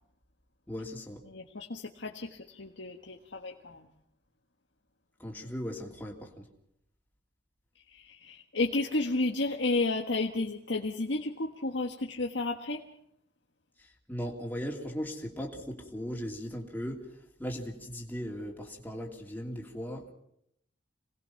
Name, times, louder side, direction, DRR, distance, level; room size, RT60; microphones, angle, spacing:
voice 1, 0.7-1.2 5.2-6.5 13.8-17.1 17.4-20.1, equal, 10° left, -1 dB, 2.8 m, -38 dB
voice 2, 1.3-3.9 7.9-12.8, left 2 dB, 75° left, 1 dB, 1.6 m, -32 dB
27.0 x 19.5 x 5.9 m, 0.74 s
head